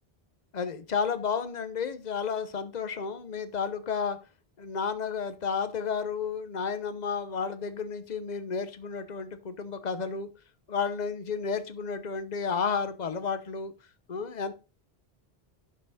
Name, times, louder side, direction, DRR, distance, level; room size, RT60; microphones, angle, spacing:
voice 1, 0.5-4.2 4.6-10.3 10.7-13.7 14.1-14.5, left 6 dB, 45° left, 11 dB, 1.0 m, -32 dB
11.0 x 6.0 x 4.1 m, 0.30 s
omnidirectional pair, 1.1 m